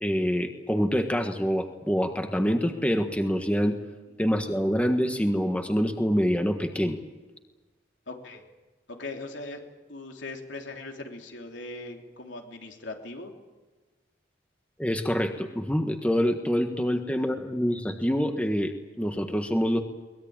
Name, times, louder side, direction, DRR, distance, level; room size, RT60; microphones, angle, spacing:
voice 1, 0.0-3.8 4.2-7.0 14.8-19.8, equal, 5° left, 5 dB, 1.5 m, -26 dB
voice 2, 8.1-8.4 8.9-9.6 9.9-13.3 17.1-17.3, left 2 dB, 80° left, 2 dB, 3.3 m, -40 dB
23.0 x 20.5 x 8.9 m, 1.2 s
head